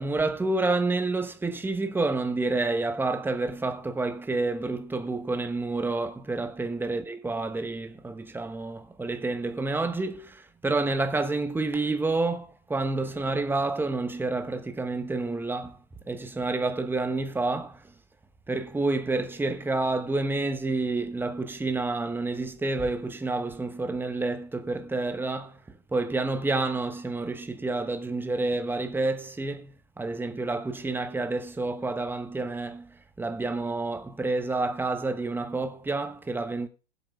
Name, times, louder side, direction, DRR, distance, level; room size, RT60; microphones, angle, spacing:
voice 1, 0.0-15.8 16.1-17.9 18.5-36.7, right 3 dB, 5° right, 1.0 m, -29 dB
20.5 x 8.2 x 2.3 m
hypercardioid pair, 100°, 32 cm